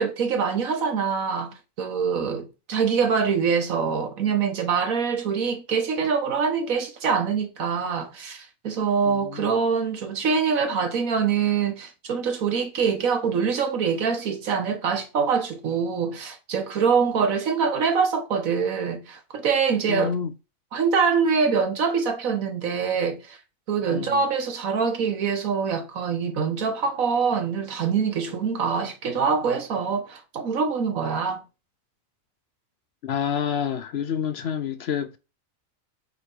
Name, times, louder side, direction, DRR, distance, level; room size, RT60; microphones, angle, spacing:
voice 1, 0.0-20.1 20.7-23.4 23.7-31.4, right 6 dB, 90° right, 1.6 m, -24 dB
voice 2, 9.1-9.6 19.9-20.3 23.9-24.2 33.0-35.2, left 8 dB, 60° left, 0.8 m, -28 dB
7.9 x 3.6 x 4.5 m
omnidirectional pair, 1.4 m